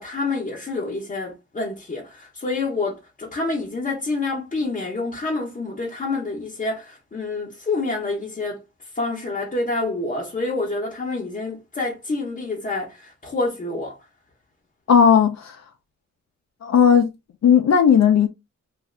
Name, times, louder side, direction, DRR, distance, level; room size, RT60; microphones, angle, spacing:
voice 1, 0.0-8.6 8.9-14.0, left 3 dB, 30° left, 0.7 m, -27 dB
voice 2, 14.9-15.5 16.6-17.1 17.4-18.3, left 7 dB, 65° left, 0.5 m, -15 dB
2.6 x 2.4 x 3.1 m
wide cardioid pair, 115°, 29 cm